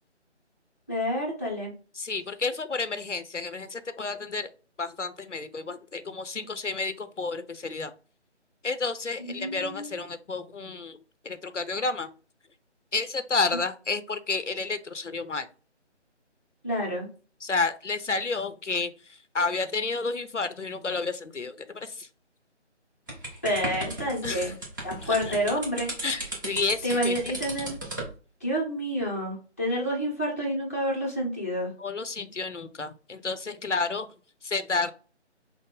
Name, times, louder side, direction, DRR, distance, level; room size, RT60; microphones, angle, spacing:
voice 1, 0.9-1.7 9.3-9.9 16.6-17.1 23.4-24.5 24.8-25.9 26.8-27.7 28.4-31.7, equal, 10° left, -5 dB, 0.7 m, -28 dB
voice 2, 1.9-4.5 4.8-7.9 8.6-11.0 11.2-12.1 12.9-15.5 17.4-22.1 24.2-24.5 25.0-25.4 26.0-27.2 31.8-34.1 34.4-34.9, left 4 dB, 90° left, 11 dB, 0.7 m, -31 dB
sound 1, 23.1-28.1, right 1 dB, 15° right, 1.0 m, -35 dB
5.9 x 2.1 x 3.7 m, 0.37 s
figure-of-eight pair, 155°, 35 cm